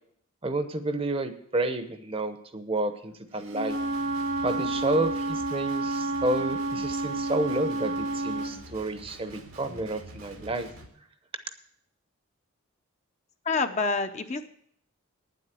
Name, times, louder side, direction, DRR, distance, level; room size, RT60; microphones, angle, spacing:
voice 1, 0.4-3.8 4.4-10.7, right 2 dB, 25° right, 9 dB, 0.8 m, -30 dB
Wind instrument woodwind instrument, 3.5-8.5, right 2 dB, 70° right, 2.0 m, -30 dB
Guitar, 3.7-10.9, right 2 dB, 90° right, 2.2 m, -47 dB
voice 2, 13.4-14.5, left 4 dB, 35° left, 7 dB, 0.6 m, -27 dB
9.6 x 7.9 x 7.5 m, 0.68 s
head